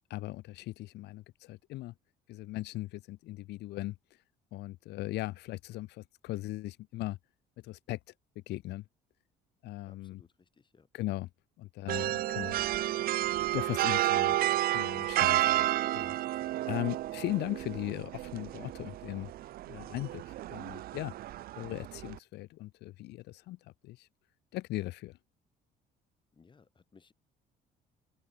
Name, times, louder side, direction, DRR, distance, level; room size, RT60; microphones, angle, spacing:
voice 1, 0.1-1.9 2.3-3.9 4.5-7.2 7.6-8.0 8.3-8.8 9.6-10.2 10.9-11.3 11.6-12.6 13.5-16.1 16.7-19.3 19.7-21.1 21.6-23.6 23.8-24.1 24.5-25.2, left 17 dB, 80° left, 3.4 m, -38 dB
voice 2, 9.9-10.9 26.3-27.1, left 5 dB, 30° left, 5.8 m, -62 dB
sound 1, 11.9-22.2, right 15 dB, 65° right, 0.5 m, -31 dB
cardioid pair, 110°, 17 cm